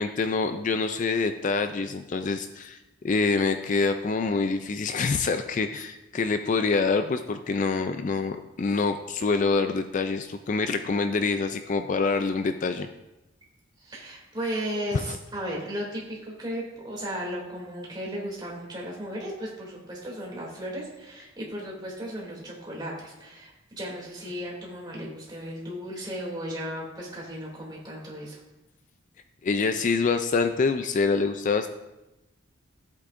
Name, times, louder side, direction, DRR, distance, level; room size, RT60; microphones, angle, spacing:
voice 1, 0.0-2.8 3.0-12.9 14.9-15.2 29.4-31.7, left 4 dB, 40° left, 8 dB, 0.3 m, -26 dB
voice 2, 13.8-28.4, equal, 20° right, -4 dB, 2.7 m, -35 dB
14.0 x 8.3 x 2.6 m, 1.0 s
head